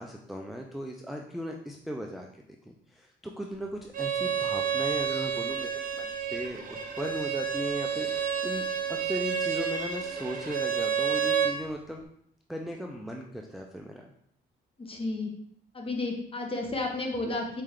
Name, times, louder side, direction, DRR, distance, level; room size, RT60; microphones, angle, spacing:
voice 1, 0.0-2.3 2.7-12.1 12.5-14.1, equal, ahead, 1 dB, 0.4 m, -37 dB
Bowed string instrument, 3.9-11.6, right 7 dB, 45° right, 0.8 m, -30 dB
voice 2, 14.8-15.3 15.7-17.6, left 2 dB, 30° left, 2 dB, 1.0 m, -32 dB
4.2 x 3.3 x 3.7 m, 0.70 s
cardioid pair, 90°, 20 cm